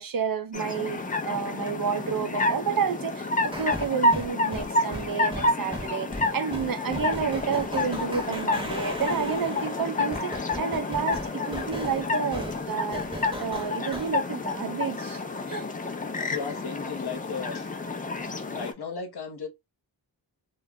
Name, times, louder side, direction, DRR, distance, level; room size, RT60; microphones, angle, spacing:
voice 1, 0.0-13.0 13.4-15.2 15.5-15.7, right 6 dB, 50° right, 0.6 m, -30 dB
sound 1, 0.5-18.7, left 2 dB, 20° left, 0.3 m, -29 dB
sound 2, 3.5-14.1, right 1 dB, 10° right, 0.8 m, -38 dB
voice 2, 16.0-17.7 18.5-19.5, left 5 dB, 60° left, 0.8 m, -36 dB
2.2 x 2.0 x 3.4 m
cardioid pair, 65°, 44 cm